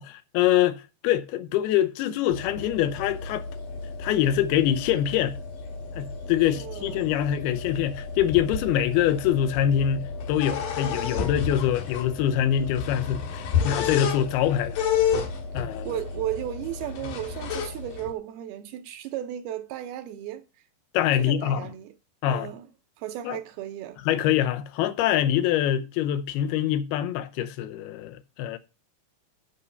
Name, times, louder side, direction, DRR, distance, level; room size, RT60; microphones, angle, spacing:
voice 1, 0.3-3.5 4.0-5.4 5.9-14.8 15.5-15.9 20.9-21.6 22.2-22.5 23.2-23.4 24.1-28.6, left 11 dB, 80° left, 2.6 m, -24 dB
sound 1, 2.3-18.1, left 6 dB, 60° left, 2.5 m, -31 dB
voice 2, 6.5-7.1 15.6-20.4 21.2-21.9 22.2-22.7 23.0-24.0, right 12 dB, 80° right, 2.5 m, -35 dB
8.4 x 5.4 x 6.8 m
omnidirectional pair, 4.7 m